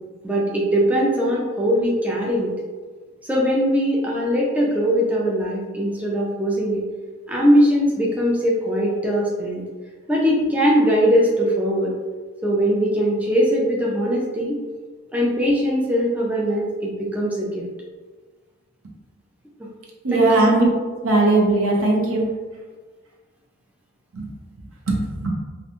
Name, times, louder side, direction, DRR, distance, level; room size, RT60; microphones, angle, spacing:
voice 1, 0.2-2.5 3.2-6.8 7.3-9.6 10.1-11.9 12.4-14.6 15.1-17.6 20.1-20.5, equal, 5° right, -4 dB, 0.3 m, -20 dB
voice 2, 20.0-20.7 21.0-22.2 24.1-24.3 24.9-25.3, right 2 dB, 90° right, -1 dB, 0.6 m, -18 dB
2.4 x 2.2 x 2.8 m, 1.4 s
head